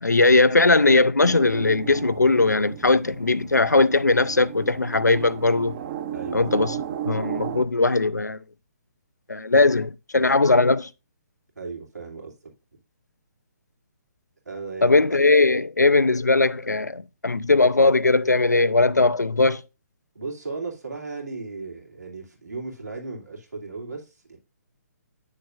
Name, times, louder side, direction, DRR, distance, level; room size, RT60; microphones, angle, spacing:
voice 1, 0.0-5.8 6.3-6.8 7.1-8.4 9.3-10.9 14.8-19.6, left 3 dB, 85° left, 0.4 m, -19 dB
sound 1, 1.2-7.6, right 9 dB, 35° right, 0.7 m, -35 dB
voice 2, 6.1-6.6 11.5-12.5 14.4-15.1 20.1-24.4, right 4 dB, 75° right, 2.4 m, -36 dB
8.6 x 6.4 x 2.4 m
figure-of-eight pair, 135°, 9 cm